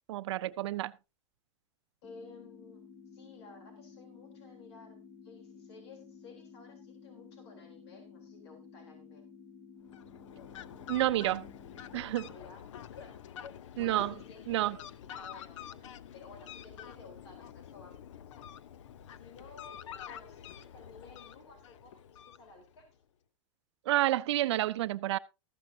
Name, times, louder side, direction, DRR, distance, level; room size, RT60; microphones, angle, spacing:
voice 1, 0.1-0.9 10.9-11.5 11.9-12.3 13.8-14.1 14.5-14.8 23.9-25.2, right 15 dB, 65° right, 0.5 m, -29 dB
voice 2, 2.0-2.8 3.1-5.0 5.2-9.2 12.3-12.6 12.9-13.2 13.8-18.0 19.2-19.8 20.0-22.9, left 3 dB, 60° left, 3.6 m, -54 dB
sound 1, 2.0-12.0, left 6 dB, 25° left, 1.9 m, -53 dB
Fowl, 9.8-22.8, left 9 dB, 80° left, 0.8 m, -48 dB
14.0 x 13.0 x 2.7 m
supercardioid pair, 175°, 15 cm